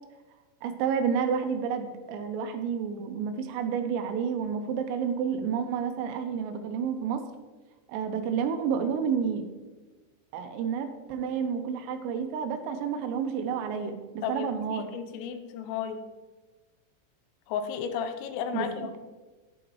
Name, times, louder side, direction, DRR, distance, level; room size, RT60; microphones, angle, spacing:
voice 1, 0.6-7.2 7.9-9.5 10.3-14.9 18.5-19.0, right 7 dB, 85° right, 7 dB, 3.4 m, -30 dB
voice 2, 14.2-16.0 17.5-18.9, left 7 dB, 80° left, 8 dB, 3.3 m, -33 dB
11.5 x 9.1 x 3.1 m, 1.2 s
omnidirectional pair, 5.9 m